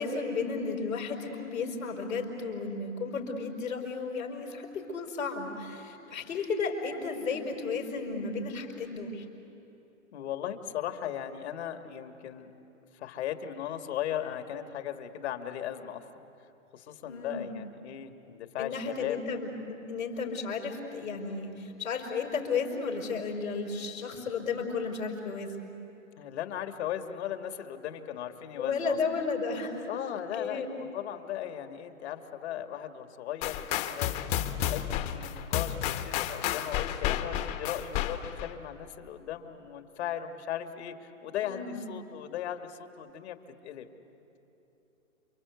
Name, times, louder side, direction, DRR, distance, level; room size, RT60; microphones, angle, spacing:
voice 1, 0.0-9.3 17.1-17.5 18.6-25.7 28.5-29.9 30.3-30.7 41.4-41.8, left 4 dB, 80° left, 2 dB, 5.3 m, -33 dB
voice 2, 10.1-12.5 12.9-16.1 16.7-19.2 26.2-29.0 29.9-34.3 34.7-43.4 43.6-43.9, left 10 dB, 55° left, 7 dB, 2.1 m, -37 dB
sound 1, 33.4-38.5, left 11 dB, 35° left, 1.3 m, -32 dB
29.0 x 25.0 x 8.3 m, 3.0 s
hypercardioid pair, 130°, 40 cm